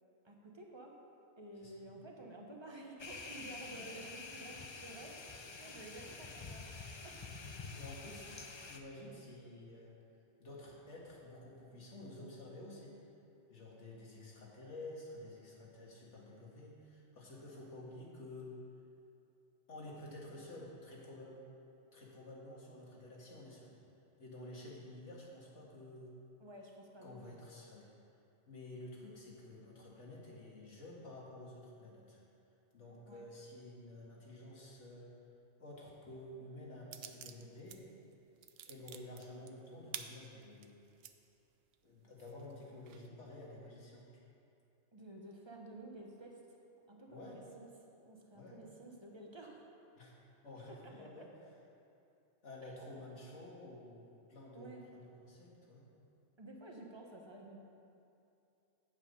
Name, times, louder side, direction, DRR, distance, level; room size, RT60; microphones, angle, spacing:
voice 1, 0.2-1.0 1.4-5.2 5.6-6.7 7.0-7.2 7.7-7.8 26.4-27.4 33.1-33.3 44.9-46.6 46.9-47.7 48.0-49.7 50.8-51.3 52.6-52.7 54.5-54.9 56.4-57.6, right 1 dB, 25° right, 0 dB, 1.0 m, -52 dB
voice 2, 1.6-2.1 3.7-3.8 5.7-5.8 7.8-9.9 10.4-12.9 13.5-18.6 19.7-21.3 21.9-23.7 24.2-26.1 27.0-27.9 28.5-32.2 32.7-35.1 35.6-37.9 38.7-40.9 41.8-44.0 47.1-47.4 48.3-48.6 50.0-50.2 50.4-51.3 52.4-55.9, left 1 dB, 80° left, -4 dB, 2.1 m, -51 dB
sound 1, 3.0-8.8, left 4 dB, 40° left, 0.4 m, -48 dB
sound 2, 36.9-37.8 38.1-41.1 41.7-41.8 42.2-43.1, right 9 dB, 65° right, 0.7 m, -49 dB
8.8 x 7.5 x 5.3 m, 2.7 s
omnidirectional pair, 1.2 m